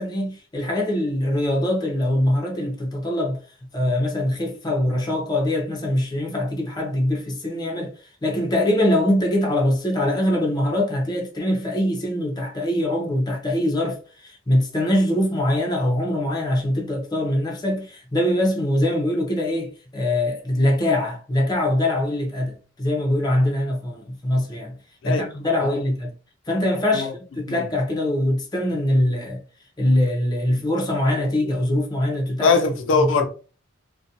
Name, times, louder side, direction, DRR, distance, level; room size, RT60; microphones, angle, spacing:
voice 1, 0.0-3.4 3.7-7.9 8.2-24.8 25.0-26.1 26.5-29.4 29.8-32.6 32.9-33.3, left 1 dB, 20° left, 0.6 m, -23 dB
voice 2, 32.4-33.3, left 4 dB, 80° left, 0.4 m, -20 dB
2.5 x 2.2 x 2.8 m
head